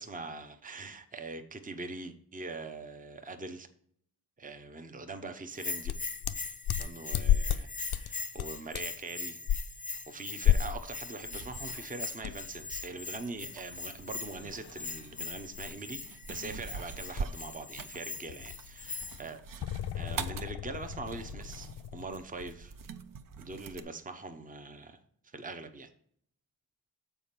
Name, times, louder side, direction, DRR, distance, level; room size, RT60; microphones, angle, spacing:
voice 1, 0.0-3.7 4.4-5.9 6.8-9.4 9.8-19.4 19.9-22.7 23.4-25.0 25.3-25.9, right 3 dB, 20° right, 7 dB, 0.8 m, -43 dB
Bell, 5.5-19.3, left 4 dB, 20° left, 0.4 m, -41 dB
sound 1, 5.8-7.6 7.9-8.1 8.4-9.0 9.5-9.6 10.4-10.9 11.3-11.4 12.2-17.5 17.7-18.0 18.3-22.1, left 10 dB, 75° left, 0.5 m, -33 dB
sound 2, 11.2-23.8, right 5 dB, 55° right, 0.6 m, -45 dB
7.0 x 4.4 x 5.8 m, 0.63 s
wide cardioid pair, 105°, 38 cm